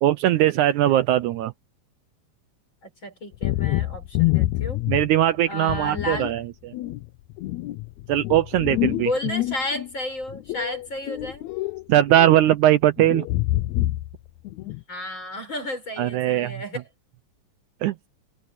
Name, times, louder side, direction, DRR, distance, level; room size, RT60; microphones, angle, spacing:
voice 1, 0.0-1.5 4.9-6.7 8.1-9.1 11.9-13.3 16.0-16.5 17.8-18.0, right 13 dB, 80° right, 1.8 m, -20 dB
voice 2, 2.8-4.8 5.5-6.3 8.8-11.4 14.6-16.9, left 1 dB, 35° left, 5.9 m, -32 dB
sound 1, 3.3-5.2 5.7-6.3 6.7-9.9 10.3-11.8 12.1-12.4 13.0-14.2 14.4-14.8, left 17 dB, 85° left, 1.6 m, -26 dB
omnidirectional pair, 4.0 m